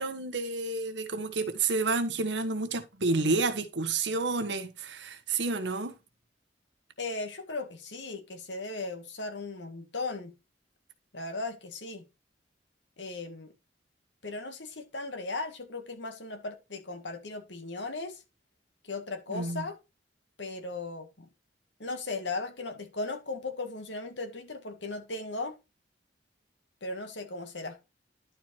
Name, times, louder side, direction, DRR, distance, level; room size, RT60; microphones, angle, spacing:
voice 1, 0.0-6.0 19.3-19.6, right 3 dB, 75° right, 1.4 m, -30 dB
voice 2, 7.0-10.3 11.1-12.0 13.0-13.5 14.2-18.2 18.8-19.8 20.4-21.3 21.8-25.6 26.8-27.8, left 3 dB, 80° left, 2.0 m, -37 dB
11.5 x 4.6 x 4.6 m
head